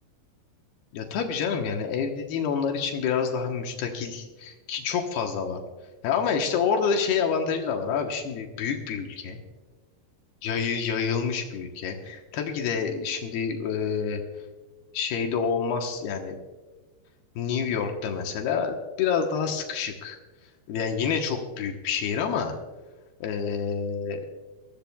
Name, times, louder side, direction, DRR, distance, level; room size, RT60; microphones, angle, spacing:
voice 1, 0.9-5.6 6.0-9.4 10.4-14.2 14.9-16.4 17.4-20.2 20.7-22.5 23.2-24.2, left 6 dB, 70° left, 3 dB, 2.4 m, -28 dB
23.0 x 15.5 x 2.3 m, 1.3 s
omnidirectional pair, 5.9 m